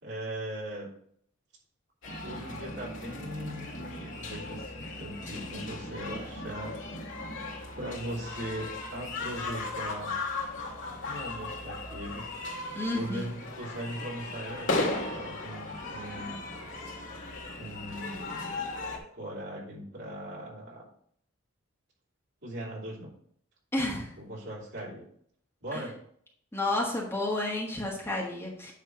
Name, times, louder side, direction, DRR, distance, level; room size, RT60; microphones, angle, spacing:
voice 1, 0.0-0.9 2.2-6.8 7.8-10.2 11.0-12.4 12.9-16.4 17.6-18.5 19.1-20.9 22.4-23.1 24.2-25.0 25.6-25.9, right 1 dB, 55° right, -4 dB, 3.3 m, -39 dB
sound 1, 2.0-19.0, left 2 dB, 60° left, 2.2 m, -37 dB
voice 2, 12.7-13.3 23.7-24.1 25.7-25.8 26.5-28.7, left 2 dB, 10° left, -2 dB, 1.5 m, -31 dB
9.5 x 3.4 x 6.2 m, 0.64 s
head